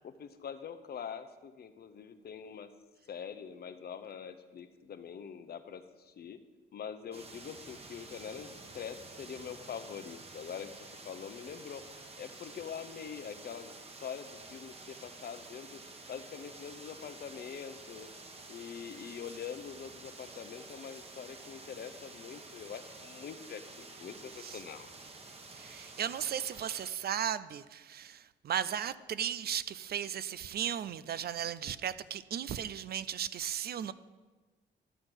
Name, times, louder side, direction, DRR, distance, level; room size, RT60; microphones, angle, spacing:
voice 1, 0.0-2.7 3.1-6.4 6.7-10.7 11.0-11.8 12.2-13.7 14.0-15.8 16.1-18.1 18.5-24.9, left 7 dB, 50° left, 11 dB, 0.8 m, -44 dB
sound 1, 7.1-26.9, right 3 dB, 30° right, 1.4 m, -50 dB
voice 2, 25.5-33.9, right 9 dB, 50° right, 15 dB, 0.5 m, -36 dB
12.0 x 4.4 x 7.8 m, 1.3 s
cardioid pair, 90°, 20 cm